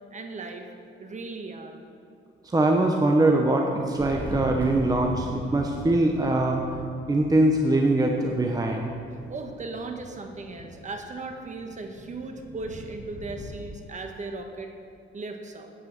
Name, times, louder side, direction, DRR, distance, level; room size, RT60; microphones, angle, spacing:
voice 1, 0.1-0.7 1.0-1.8 9.3-14.7 15.1-15.7, right 3 dB, 35° right, 4 dB, 1.4 m, -37 dB
voice 2, 2.4-6.8 7.1-8.9, right 2 dB, 20° right, 1 dB, 0.9 m, -22 dB
Thunder, 3.9-13.7, equal, 10° left, 2.1 m, -40 dB
8.7 x 8.1 x 7.2 m, 2.5 s
cardioid pair, 90°, 20 cm